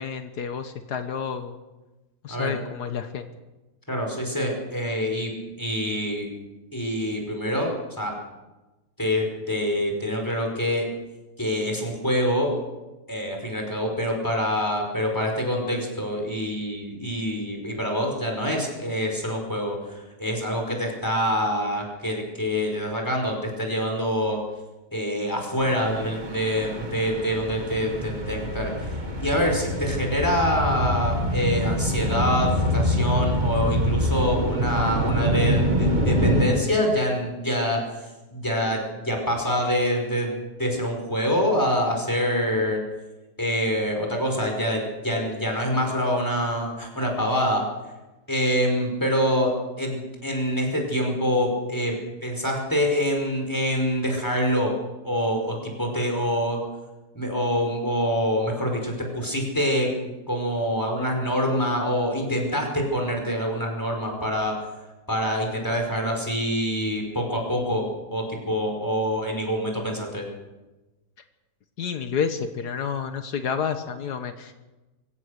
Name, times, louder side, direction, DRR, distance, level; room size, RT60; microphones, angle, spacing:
voice 1, 0.0-1.6 2.2-3.3 71.8-74.5, left 6 dB, 80° left, 8 dB, 1.7 m, -29 dB
voice 2, 3.9-6.3 6.7-8.2 9.0-10.9 11.4-12.6 13.1-24.4 24.9-42.8 43.4-47.7 48.3-52.0 52.2-54.8 55.0-56.6 57.1-64.7 65.1-70.3, equal, 10° left, 1 dB, 5.2 m, -26 dB
sound 1, 25.6-36.4, equal, 30° right, 2.2 m, -25 dB
23.0 x 17.0 x 6.6 m, 1.1 s
omnidirectional pair, 1.7 m